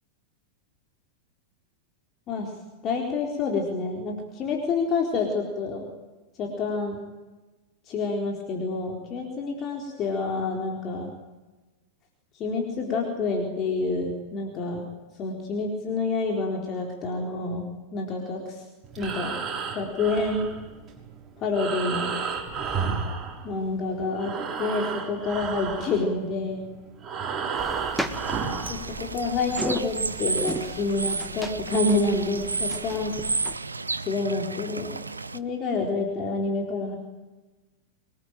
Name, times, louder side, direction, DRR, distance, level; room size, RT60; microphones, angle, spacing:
voice 1, 2.3-2.6 2.8-5.9 6.4-7.0 7.8-11.1 12.3-14.9 15.1-18.6 19.0-19.4 19.7-20.5 21.4-22.2 23.4-24.3 24.6-26.6 28.7-33.2 34.0-35.1 35.3-37.0, left 3 dB, 30° left, 1 dB, 4.1 m, -28 dB
Breathing, 18.8-23.8 24.1-28.8, right 5 dB, 25° right, 5.9 m, -32 dB
sound 1, 27.6-33.6, right 1 dB, ahead, 1.8 m, -37 dB
Bird / Water, 27.9-35.4, right 3 dB, 80° right, 0.9 m, -32 dB
25.5 x 21.0 x 9.1 m, 1.2 s
figure-of-eight pair, 90°, 0 cm